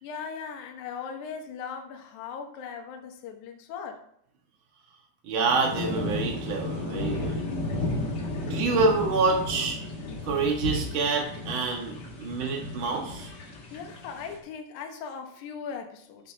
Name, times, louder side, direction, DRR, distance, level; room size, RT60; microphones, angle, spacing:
voice 1, 0.0-4.0 13.7-16.3, left 6 dB, 65° left, 4 dB, 2.3 m, -39 dB
voice 2, 5.2-7.5 8.3-9.8 10.2-13.3, right 4 dB, 45° right, 1 dB, 1.8 m, -27 dB
sound 1, 5.5-14.4, left 2 dB, 50° left, 1.3 m, -33 dB
13.5 x 5.4 x 3.4 m, 0.70 s
omnidirectional pair, 4.3 m